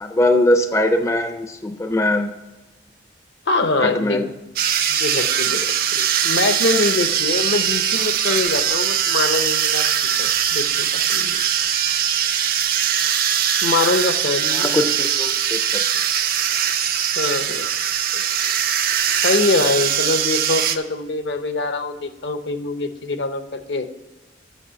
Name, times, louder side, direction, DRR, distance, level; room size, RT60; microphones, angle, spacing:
voice 1, 0.0-2.3 3.8-4.3 14.5-15.8, left 1 dB, 15° left, 7 dB, 0.5 m, -21 dB
voice 2, 3.5-4.2 4.9-9.9 10.2-11.4 13.6-14.7 17.2-17.7 18.1-18.2 19.2-23.9, left 3 dB, 65° left, 9 dB, 0.8 m, -23 dB
sound 1, 4.6-20.8, right 9 dB, 50° right, 0.6 m, -21 dB
8.3 x 6.4 x 7.5 m, 1.1 s
head